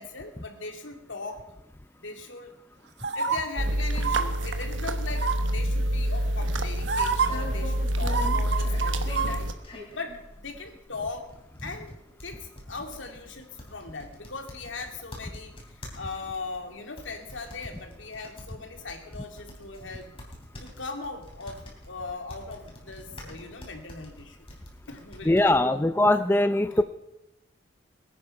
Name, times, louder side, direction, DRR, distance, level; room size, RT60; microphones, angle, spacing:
voice 1, 0.0-1.4 2.0-2.5 3.1-9.5 9.9-11.3 11.6-11.9 12.2-20.1 20.6-24.4 24.9-25.8 26.7-26.8, left 3 dB, 90° left, 4 dB, 2.5 m, -39 dB
sound 1, 3.0-3.4 4.0-4.2 5.1-5.5 6.4-6.5 6.9-7.3 8.0-9.3 9.6-9.7, right 6 dB, 60° right, 1.2 m, -27 dB
sound 2, 3.6-9.5, equal, 85° right, 1.2 m, -27 dB
sound 3, 7.1-25.5, left 1 dB, 30° left, 3.3 m, -45 dB
voice 2, 25.3-26.8, left 1 dB, 10° left, 10 dB, 0.4 m, -21 dB
21.0 x 10.0 x 5.8 m, 0.89 s
head